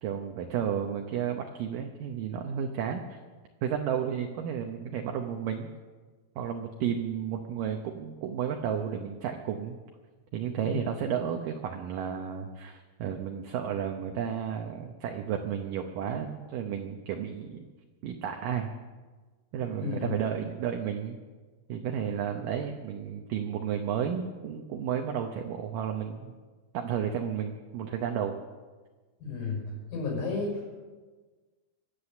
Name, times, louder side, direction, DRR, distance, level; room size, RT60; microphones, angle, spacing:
voice 1, 0.0-3.2 3.6-5.7 6.4-9.8 10.3-17.7 18.0-18.7 19.5-21.2 21.7-26.3 26.7-28.4, right 8 dB, 70° right, 3 dB, 2.4 m, -32 dB
voice 2, 19.8-20.2 29.2-29.6 29.9-30.7, left 4 dB, 65° left, -3 dB, 7.7 m, -32 dB
24.5 x 8.5 x 7.1 m, 1.4 s
omnidirectional pair, 4.4 m